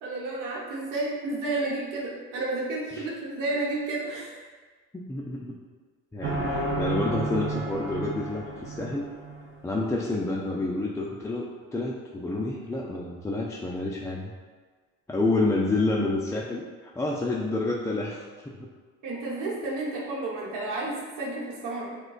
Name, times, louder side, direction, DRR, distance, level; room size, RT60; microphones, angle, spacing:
voice 1, 0.0-4.4 19.0-22.0, right 2 dB, 75° right, -4 dB, 1.0 m, -31 dB
voice 2, 4.9-5.5 6.1-9.1 9.6-11.5 11.7-14.3 15.1-18.7, left 2 dB, 10° left, -3 dB, 0.3 m, -29 dB
sound 1, 6.2-9.7, right 2 dB, 40° right, 0.7 m, -32 dB
4.7 x 2.2 x 2.3 m, 1.4 s
supercardioid pair, 65°, 32 cm